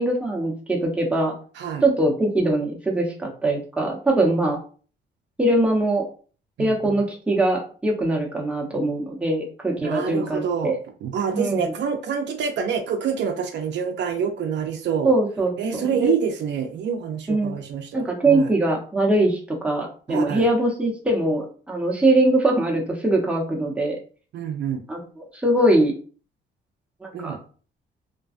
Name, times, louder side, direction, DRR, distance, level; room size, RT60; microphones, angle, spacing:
voice 1, 0.0-1.3 1.8-4.6 5.4-6.0 6.6-10.8 11.3-11.7 15.0-16.1 17.3-17.5 17.9-24.0 24.9-25.9 27.0-27.4, right 1 dB, 5° right, -1 dB, 0.8 m, -22 dB
voice 2, 6.6-7.0 9.8-10.7 11.0-15.1 15.6-18.5 20.1-20.4 24.3-24.8 27.1-27.4, right 7 dB, 65° right, 5 dB, 0.4 m, -27 dB
2.5 x 2.2 x 2.4 m, 0.40 s
cardioid pair, 90°, 20 cm